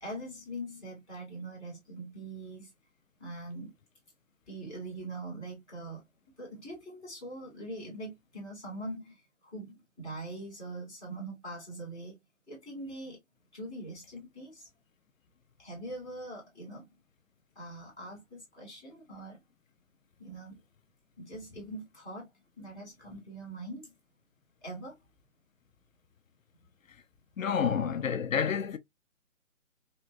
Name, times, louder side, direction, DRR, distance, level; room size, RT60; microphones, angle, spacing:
voice 1, 0.0-2.7 3.2-3.7 4.5-6.0 6.4-9.2 9.5-12.2 12.5-13.2 13.5-14.7 15.6-16.9 17.5-19.4 20.2-20.6 21.2-22.3 22.6-23.9 24.6-24.9, right 1 dB, ahead, 0.6 m, -42 dB
voice 2, 27.4-28.8, left 7 dB, 70° left, 0.5 m, -29 dB
3.6 x 2.1 x 2.5 m
figure-of-eight pair, 155°, 42 cm